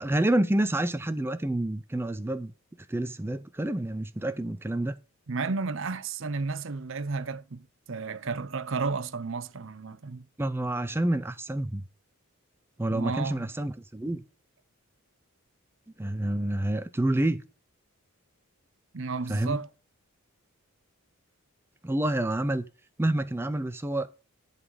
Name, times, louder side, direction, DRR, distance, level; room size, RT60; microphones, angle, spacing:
voice 1, 0.0-2.5 2.9-4.9 10.4-11.8 12.8-14.2 16.0-17.4 19.3-19.6 21.8-22.7 23.0-24.1, right 1 dB, 10° right, 0.4 m, -28 dB
voice 2, 5.3-10.2 12.9-13.5 18.9-19.7, right 4 dB, 55° right, 0.7 m, -32 dB
11.0 x 4.1 x 6.2 m
head